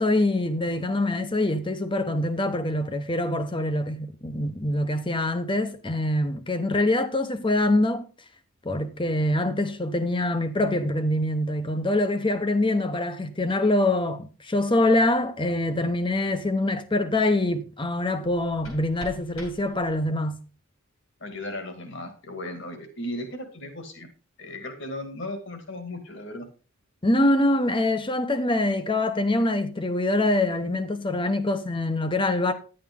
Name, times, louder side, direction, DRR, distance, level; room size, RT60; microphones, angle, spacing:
voice 1, 0.0-8.1 8.6-20.4 27.0-32.5, left 1 dB, 25° left, 0.9 m, -24 dB
sound 1, 18.2-20.2, equal, 80° left, 6.1 m, -45 dB
voice 2, 21.2-24.1 24.4-26.5, left 1 dB, 60° left, 2.2 m, -36 dB
10.5 x 8.8 x 3.7 m
head